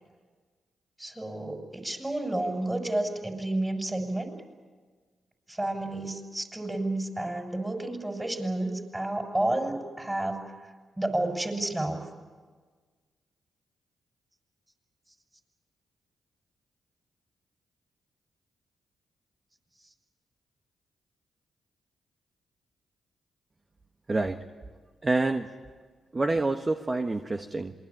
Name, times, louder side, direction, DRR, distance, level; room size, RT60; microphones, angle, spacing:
voice 1, 1.0-4.3 5.5-10.5 11.0-12.0, right 1 dB, 20° right, 4 dB, 6.7 m, -30 dB
voice 2, 24.1-24.4 25.0-25.5 26.1-27.7, right 2 dB, 35° right, 6 dB, 1.4 m, -27 dB
27.5 x 21.5 x 8.8 m, 1.5 s
hypercardioid pair, 40°, 0 cm